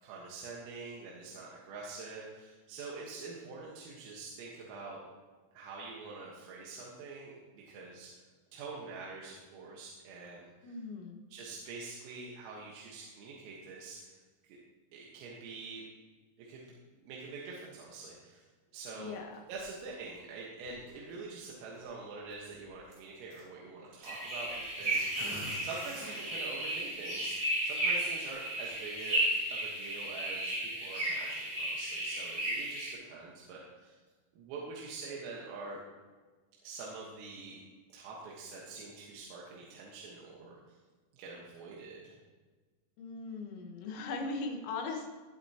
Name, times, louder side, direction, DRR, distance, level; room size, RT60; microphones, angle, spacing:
voice 1, 0.0-5.0 5.5-8.1 8.5-10.7 11.3-14.2 14.4-14.6 14.9-15.8 16.4-16.7 17.0-18.4 18.7-19.1 19.5-25.3 25.6-29.2 29.5-34.0 34.3-35.8 36.6-37.6 37.9-40.6 41.1-42.2, right 3 dB, 85° right, -4 dB, 4.1 m, -45 dB
voice 2, 10.6-11.2 18.9-19.4 43.0-45.1, left 3 dB, 70° left, 3 dB, 3.3 m, -39 dB
sound 1, 18.9-20.3 20.6-21.1 21.5-21.6 21.8-21.9 22.3-23.4 24.0-26.3 26.7-26.8 27.2-28.7 29.1-29.4, right 1 dB, 45° right, 4.2 m, -49 dB
sound 2, 24.1-32.9, right 1 dB, 20° right, 3.8 m, -34 dB
19.5 x 8.0 x 2.9 m, 1.4 s
omnidirectional pair, 5.8 m